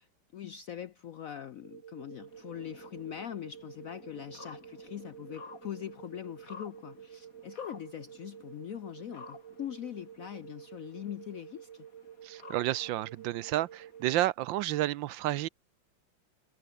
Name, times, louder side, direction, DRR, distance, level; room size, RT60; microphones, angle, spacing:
voice 1, 0.0-11.9, left 10 dB, 70° left, 0.8 m, -42 dB
sound 1, 1.6-14.2, right 10 dB, 60° right, 0.7 m, -51 dB
sound 2, 2.3-14.2, left 5 dB, 45° left, 2.7 m, -54 dB
voice 2, 12.2-15.5, right 15 dB, 80° right, 1.3 m, -31 dB
omnidirectional pair, 2.2 m